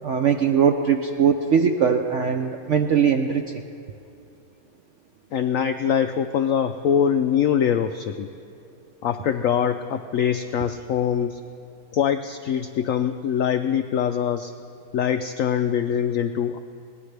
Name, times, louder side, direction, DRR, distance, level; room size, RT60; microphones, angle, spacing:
voice 1, 0.0-3.6, right 7 dB, 70° right, 5 dB, 0.7 m, -21 dB
voice 2, 5.3-8.3 9.0-11.4 11.9-14.5 14.9-16.6, left 8 dB, 90° left, 8 dB, 0.7 m, -23 dB
22.0 x 19.0 x 3.3 m, 2.6 s
omnidirectional pair, 1.9 m